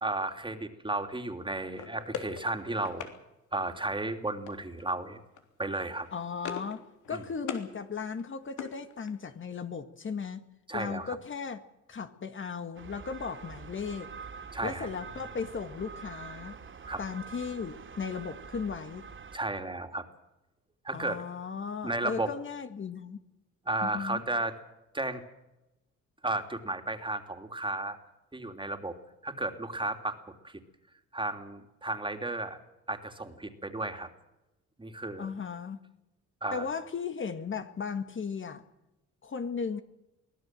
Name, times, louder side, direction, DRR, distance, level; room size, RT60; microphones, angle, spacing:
voice 1, 0.0-3.1 3.5-5.2 5.6-6.1 7.1-7.2 10.7-11.2 14.5-14.9 16.9-17.0 19.3-20.1 20.8-21.2 21.8-22.3 23.6-24.6 24.9-25.2 26.2-28.0 28.3-29.0 29.2-30.2 30.4-30.6 31.1-32.6 32.9-34.1 34.8-35.3 36.4-36.7, right 2 dB, 15° right, 6 dB, 3.0 m, -33 dB
sound 1, 1.7-3.2 4.5-4.9 5.1-5.4 5.7-6.8 7.0-7.7 8.1-9.3, left 8 dB, 80° left, 3.5 m, -41 dB
voice 2, 6.1-10.4 10.7-11.6 11.9-14.1 14.6-16.6 17.0-19.1 20.9-23.2 23.8-24.2 35.2-35.8 36.5-38.6 39.2-39.8, left 6 dB, 40° left, 9 dB, 1.8 m, -36 dB
sound 2, 12.7-19.4, right 6 dB, 40° right, 2.8 m, -45 dB
24.0 x 17.5 x 7.7 m, 0.94 s
cardioid pair, 90°, 30 cm